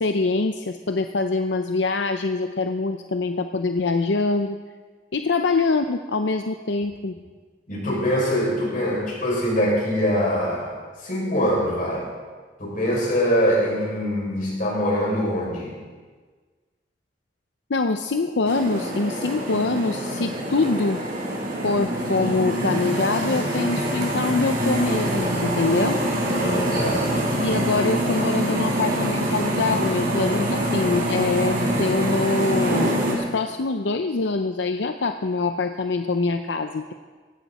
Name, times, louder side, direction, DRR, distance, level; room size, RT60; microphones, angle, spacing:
voice 1, 0.0-4.6 5.1-7.2 17.7-21.0 21.6-26.0 27.4-36.9, left 3 dB, 80° left, 7 dB, 0.6 m, -24 dB
voice 2, 7.7-10.7 11.0-12.1 12.6-15.8 26.2-27.1, equal, 50° left, -4 dB, 6.6 m, -23 dB
sound 1, 18.5-33.1, right 1 dB, 55° right, 4.9 m, -25 dB
18.5 x 16.0 x 4.3 m, 1.5 s
head